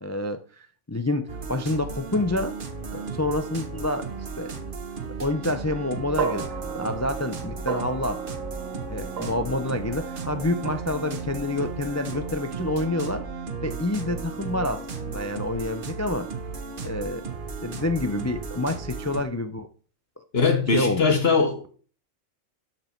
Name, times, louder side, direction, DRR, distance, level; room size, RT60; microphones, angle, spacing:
voice 1, 0.0-2.6 2.9-4.5 5.2-8.2 8.9-13.3 13.6-16.3 16.8-17.2 17.6-19.7 20.2-20.3 20.7-21.0, left 2 dB, 25° left, 0.3 m, -28 dB
sound 1, 1.3-19.2, right 5 dB, 45° right, 1.3 m, -35 dB
sound 2, 6.2-14.5, right 6 dB, 85° right, 1.6 m, -36 dB
voice 2, 20.3-21.7, left 4 dB, 55° left, 1.4 m, -21 dB
12.0 x 6.0 x 4.4 m
omnidirectional pair, 1.3 m